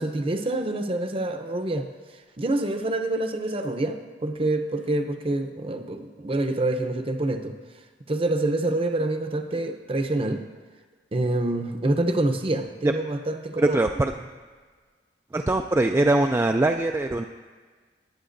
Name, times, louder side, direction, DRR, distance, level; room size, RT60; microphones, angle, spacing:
voice 1, 0.0-1.9 2.4-7.5 8.1-10.4 11.1-13.8, right 2 dB, 30° right, 7 dB, 0.7 m, -26 dB
voice 2, 13.6-14.1 15.3-17.2, right 2 dB, 15° right, 4 dB, 0.3 m, -22 dB
19.5 x 8.8 x 2.6 m, 1.5 s
head